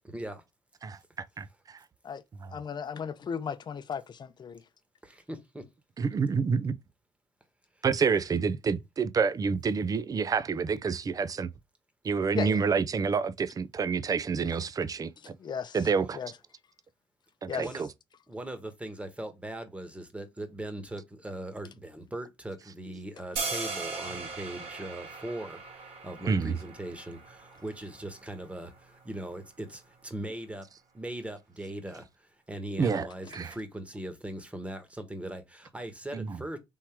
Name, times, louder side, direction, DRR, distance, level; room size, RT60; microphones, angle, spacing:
voice 1, 0.0-0.4 5.0-5.6 14.5-14.6 17.6-17.8 18.3-25.6 26.0-30.7 30.9-32.0 32.5-36.6, right 1 dB, 10° right, 1.3 m, -39 dB
voice 2, 1.4-1.8 6.0-6.7 7.8-11.5 12.0-15.1 15.7-16.2 17.4-17.9 26.3-26.6 32.8-33.5 36.1-36.4, right 5 dB, 35° right, 0.5 m, -28 dB
voice 3, 2.5-4.6 12.3-12.6 15.4-15.8 16.1-16.3 17.5-17.7, left 7 dB, 45° left, 0.6 m, -35 dB
sound 1, 23.4-29.5, right 4 dB, 75° right, 1.7 m, -39 dB
3.6 x 3.0 x 4.5 m
supercardioid pair, 70°, 10 cm